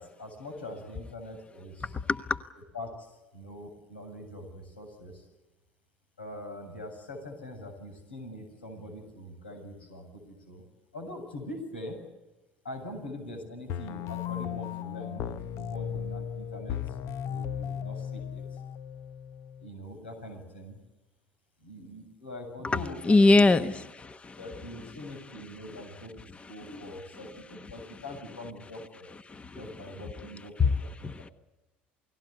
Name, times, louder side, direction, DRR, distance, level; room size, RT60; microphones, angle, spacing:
voice 1, 0.0-1.9 2.7-5.2 6.2-10.6 10.9-12.0 12.6-17.0 17.2-18.4 19.6-20.8 21.6-23.7 24.4-29.1 29.5-30.5 30.8-31.1, left 1 dB, 85° left, 4 dB, 7.6 m, -43 dB
voice 2, 2.1-2.4 22.6-23.8 24.2-24.4 25.7-25.8 26.3-26.9 29.3-29.6 30.6-31.3, left 3 dB, 20° left, 11 dB, 1.2 m, -24 dB
sound 1, 13.7-19.7, left 9 dB, 55° left, 0.9 m, -36 dB
29.0 x 19.0 x 8.2 m, 1.1 s
hypercardioid pair, 65°, 5 cm